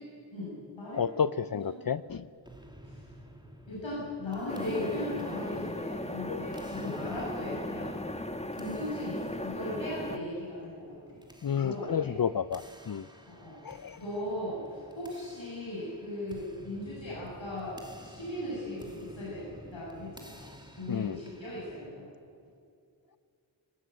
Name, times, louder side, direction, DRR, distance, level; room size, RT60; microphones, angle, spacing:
voice 1, 0.3-1.0 1.5-1.8 2.8-3.0 3.7-8.0 8.5-11.2 11.6-12.1 13.3-13.5 14.0-20.4 20.8-22.1, left 1 dB, 75° left, -7 dB, 8.0 m, -38 dB
voice 2, 0.9-2.2 6.3-6.4 11.4-13.1 13.6-14.0 20.9-21.2, left 7 dB, 50° left, 15 dB, 0.6 m, -31 dB
sound 1, 2.4-21.9, equal, 10° right, 2.9 m, -53 dB
sound 2, 4.5-10.2, left 1 dB, 15° left, 1.5 m, -37 dB
20.0 x 20.0 x 9.4 m, 2.4 s
wide cardioid pair, 70°, 46 cm